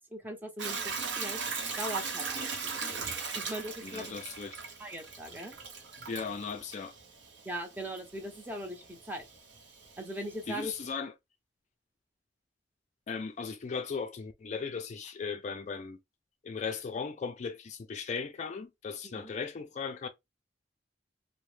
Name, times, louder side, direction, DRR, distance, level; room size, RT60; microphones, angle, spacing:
voice 1, 0.1-1.4 1.8-3.1 3.3-4.2 4.8-5.5 7.4-9.2 10.0-10.7 19.0-19.3, equal, 10° right, 0.7 m, -40 dB
Hiss / Toilet flush / Trickle dribble, 0.6-10.9, right 5 dB, 85° right, 0.8 m, -39 dB
voice 2, 3.8-4.6 6.1-6.9 10.5-11.1 13.1-16.0 16.4-20.1, left 5 dB, 40° left, 0.4 m, -37 dB
2.8 x 2.1 x 3.2 m
head